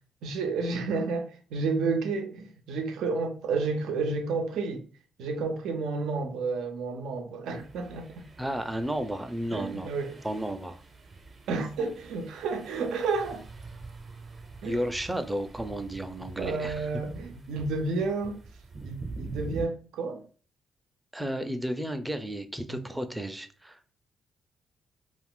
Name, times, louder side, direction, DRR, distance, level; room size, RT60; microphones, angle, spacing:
voice 1, 0.2-4.8 5.2-8.3 9.5-10.2 11.5-13.4 14.6-14.9 16.4-18.4 18.8-20.3 22.7-22.8, right 4 dB, 80° right, 0.5 m, -31 dB
sound 1, 7.5-19.6, right 3 dB, 45° right, 0.7 m, -45 dB
voice 2, 8.4-9.9 10.2-10.8 14.6-16.9 21.1-23.8, right 1 dB, 10° right, 0.5 m, -33 dB
2.4 x 2.4 x 3.6 m
cardioid pair, 90°, 0 cm